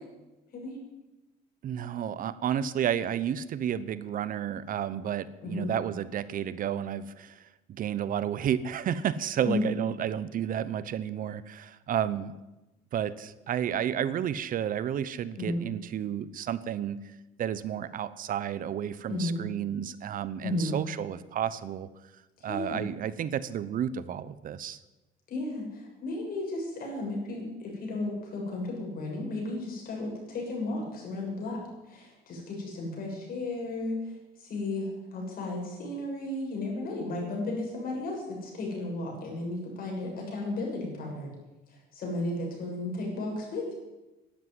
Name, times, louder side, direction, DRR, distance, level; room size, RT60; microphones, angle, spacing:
voice 1, 1.6-12.4 12.9-17.0 17.4-21.9 22.4-24.8, right 9 dB, 55° right, 16 dB, 0.8 m, -31 dB
voice 2, 20.4-20.8 22.4-22.8 25.3-31.6 31.9-34.1 34.4-41.3 41.7-43.7, left 2 dB, 60° left, -1 dB, 7.2 m, -34 dB
11.5 x 11.0 x 9.6 m, 1.0 s
cardioid pair, 110°, 17 cm